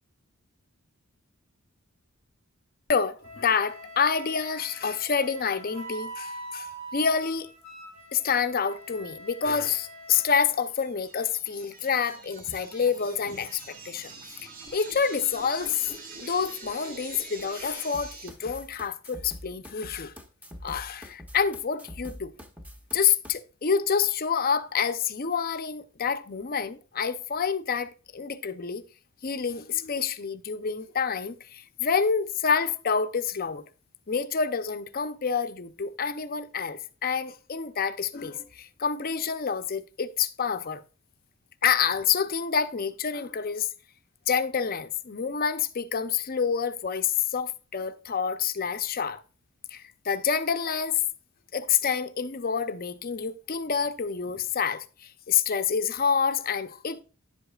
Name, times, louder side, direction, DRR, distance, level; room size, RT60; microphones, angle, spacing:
voice 1, 2.9-7.5 8.1-14.1 14.7-15.9 16.2-20.1 20.6-22.3 22.9-28.8 29.2-33.6 34.1-40.8 41.6-43.7 44.3-49.2 49.7-51.0 51.5-57.0, left 6 dB, 45° left, 0.6 m, -28 dB
Wind instrument woodwind instrument, 3.2-10.3, right 1 dB, 90° right, 2.3 m, -43 dB
sound 1, 10.5-18.3, right 3 dB, 40° right, 1.6 m, -45 dB
sound 2, 17.9-23.3, equal, 5° right, 0.8 m, -44 dB
10.5 x 8.0 x 2.3 m
head